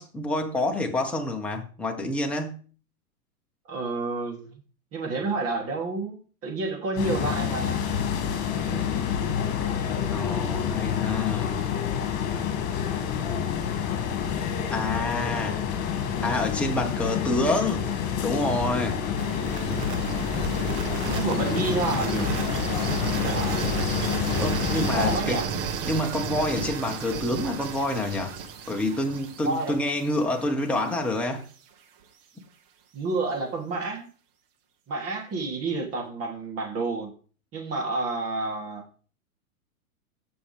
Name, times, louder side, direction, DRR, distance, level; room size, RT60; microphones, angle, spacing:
voice 1, 0.0-2.6 10.1-11.5 14.7-15.6 16.2-17.8 18.2-19.0 24.4-25.4 25.8-28.3 28.7-31.5, left 1 dB, 5° left, 1.6 m, -27 dB
voice 2, 3.7-4.5 4.9-7.9 8.7-8.8 21.1-22.3 23.2-23.7 24.9-25.5 29.4-29.8 32.9-34.1 34.9-37.1 37.5-38.8, right 3 dB, 30° right, 3.3 m, -29 dB
sound 1, 7.0-25.2, left 8 dB, 40° left, 2.4 m, -28 dB
sound 2, 19.2-31.1, right 6 dB, 50° right, 1.9 m, -33 dB
15.5 x 6.2 x 3.6 m
hypercardioid pair, 125°, 45 cm